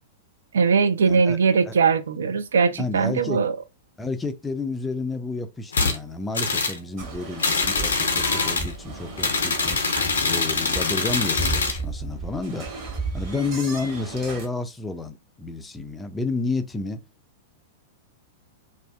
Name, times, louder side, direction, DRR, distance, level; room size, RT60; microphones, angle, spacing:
voice 1, 0.5-3.6, right 5 dB, 65° right, 0.3 m, -20 dB
voice 2, 1.1-1.4 1.6-1.7 2.7-3.4 4.0-9.8 10.2-12.7 13.1-17.0, left 3 dB, 10° left, 0.3 m, -30 dB
sound 1, 5.7-6.0 6.3-6.8 7.4-8.7 9.2-11.8, left 4 dB, 70° left, 0.5 m, -24 dB
sound 2, 7.0-14.5, right 3 dB, 40° right, 1.2 m, -34 dB
2.4 x 2.3 x 2.2 m
figure-of-eight pair, 100°, 0 cm